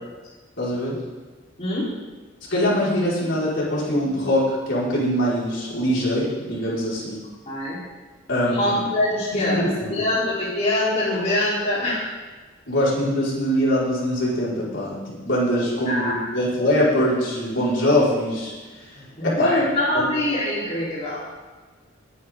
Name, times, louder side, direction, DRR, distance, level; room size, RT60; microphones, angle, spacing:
voice 1, 0.6-1.0 2.5-7.2 8.3-8.8 9.3-10.0 12.7-18.5 19.2-19.6, equal, 70° left, -7 dB, 5.5 m, -23 dB
voice 2, 7.5-7.8 8.5-9.6 9.9-12.0 15.9-16.3 19.2-21.2, left 1 dB, 35° left, -8 dB, 4.1 m, -23 dB
22.5 x 10.5 x 3.9 m, 1.3 s
head